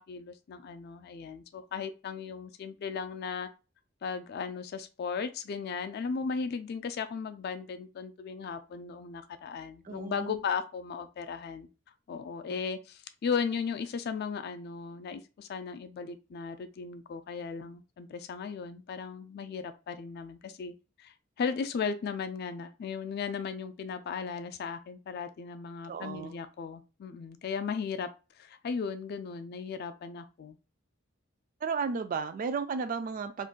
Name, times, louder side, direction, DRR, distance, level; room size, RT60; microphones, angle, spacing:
voice 1, 0.0-3.5 4.0-11.7 12.1-28.1 28.4-30.6, left 5 dB, 50° left, 0.3 m, -36 dB
voice 2, 9.8-10.4 12.5-12.6 25.8-26.3 31.6-33.5, right 5 dB, 45° right, 0.3 m, -34 dB
2.5 x 2.2 x 3.6 m
head